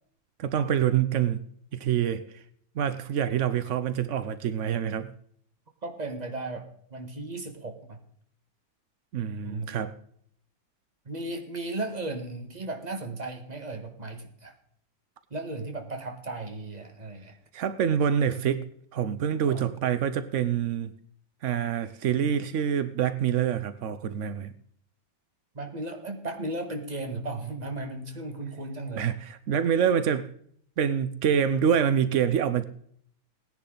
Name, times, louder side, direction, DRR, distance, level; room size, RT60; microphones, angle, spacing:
voice 1, 0.4-1.4 1.7-2.4 2.8-5.1 9.1-9.9 17.5-18.7 18.9-20.9 21.4-24.5 28.9-30.3 30.8-32.6, right 8 dB, 90° right, 0.6 m, -26 dB
voice 2, 5.8-6.6 6.9-8.0 9.4-9.8 11.0-14.5 15.3-17.3 19.4-19.7 25.5-29.1, right 2 dB, 25° right, 1.5 m, -35 dB
18.5 x 10.5 x 3.9 m
omnidirectional pair, 2.1 m